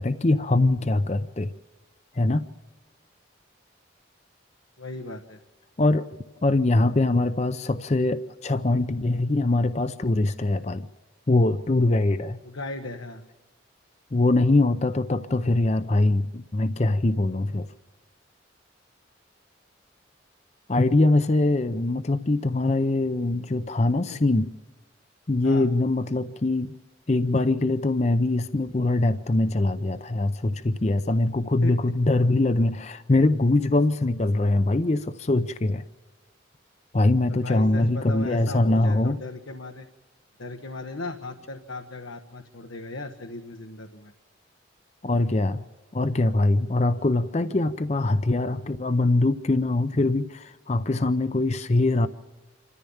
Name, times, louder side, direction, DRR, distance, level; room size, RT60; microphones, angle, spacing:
voice 1, 0.0-1.5 2.2-2.4 5.8-6.1 6.4-10.9 11.3-12.4 14.1-17.7 20.7-24.5 25.3-26.7 27.1-35.8 36.9-39.2 45.0-45.6 45.9-52.1, left 2 dB, 35° left, 12 dB, 0.6 m, -23 dB
voice 2, 4.8-5.4 12.4-13.2 24.1-24.2 25.4-25.7 31.6-31.7 37.3-39.9 40.4-44.1, left 2 dB, 85° left, 6 dB, 1.2 m, -36 dB
27.5 x 14.0 x 7.1 m, 1.2 s
head